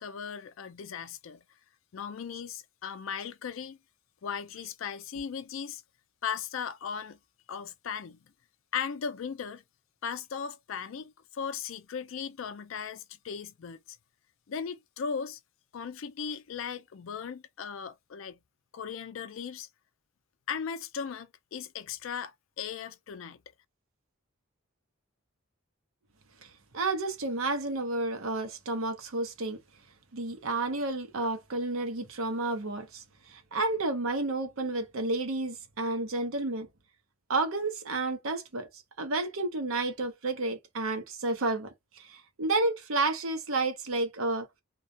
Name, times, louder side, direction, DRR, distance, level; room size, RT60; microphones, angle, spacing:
voice 1, 0.0-1.4 1.9-3.8 4.2-5.8 6.2-7.2 7.5-8.2 8.7-9.6 10.0-14.0 14.5-15.4 15.7-18.4 18.7-19.7 20.5-23.4, left 7 dB, 70° left, 0.4 m, -37 dB
voice 2, 26.4-29.6 30.1-36.7 37.3-44.5, right 2 dB, 75° right, 0.7 m, -31 dB
2.3 x 2.0 x 2.7 m
head